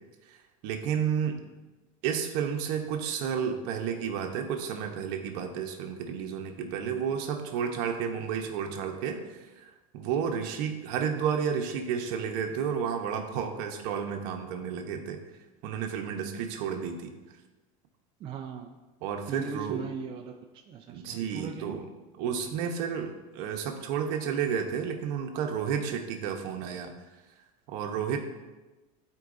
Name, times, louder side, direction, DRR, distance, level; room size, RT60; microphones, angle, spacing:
voice 1, 0.6-1.4 2.0-15.2 15.6-17.1 19.0-19.8 20.9-21.8 22.2-26.9 27.7-28.2, right 7 dB, 60° right, 4 dB, 1.0 m, -31 dB
voice 2, 18.2-18.8 19.3-20.3 20.7-21.7, right 6 dB, 30° right, 2 dB, 0.5 m, -38 dB
13.0 x 4.6 x 2.7 m, 1.2 s
supercardioid pair, 150°, 18 cm